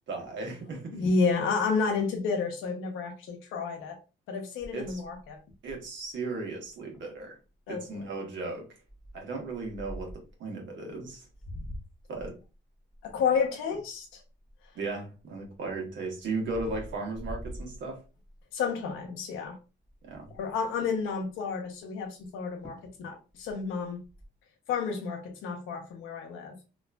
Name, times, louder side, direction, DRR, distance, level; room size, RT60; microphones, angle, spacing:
voice 1, 0.1-1.1 4.7-5.0 5.6-7.4 7.7-8.8 9.1-11.3 12.1-12.4 14.7-18.0 20.0-20.3, right 3 dB, 70° right, 1.2 m, -36 dB
voice 2, 0.9-4.0 4.3-5.4 7.7-7.8 13.0-14.1 18.5-19.6 20.4-24.0 24.7-26.6, left 5 dB, 90° left, 0.8 m, -30 dB
sound 1, 4.6-6.1 6.6-6.7 6.9-7.2 7.7-8.0 8.9-10.3 11.0-14.9 15.4-18.4 18.9-19.2 19.4-19.5 19.8-20.5 22.2-22.3 22.6-23.0 23.3-24.3, equal, ahead, 0.9 m, -44 dB
2.9 x 2.5 x 2.2 m
cardioid pair, 90°, 20 cm